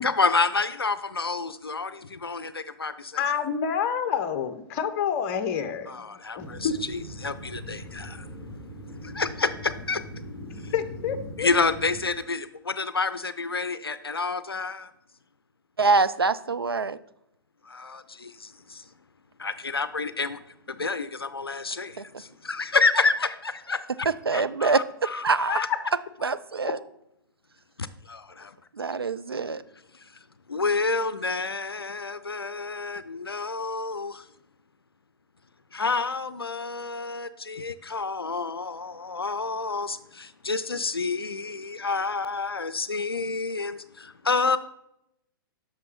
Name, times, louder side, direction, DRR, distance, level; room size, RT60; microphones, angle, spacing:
voice 1, 0.0-3.2 5.9-8.6 8.9-10.3 10.5-10.7 11.4-14.9 17.6-18.9 19.4-20.4 20.7-24.1 24.3-25.7 27.8-28.6 29.9-30.2 30.5-34.3 35.7-44.6, left 4 dB, 85° left, 0.5 m, -29 dB
voice 2, 3.2-6.0 6.4-6.8 10.7-11.5 25.5-25.6, left 7 dB, 35° left, 0.8 m, -28 dB
sound 1, 6.4-12.1, equal, 5° left, 2.5 m, -41 dB
voice 3, 15.8-17.0 22.0-22.1 24.3-24.8 25.2-25.6 26.2-26.8 28.7-29.6, right 4 dB, 85° right, 0.4 m, -24 dB
8.3 x 6.2 x 4.3 m
figure-of-eight pair, 110°, 12 cm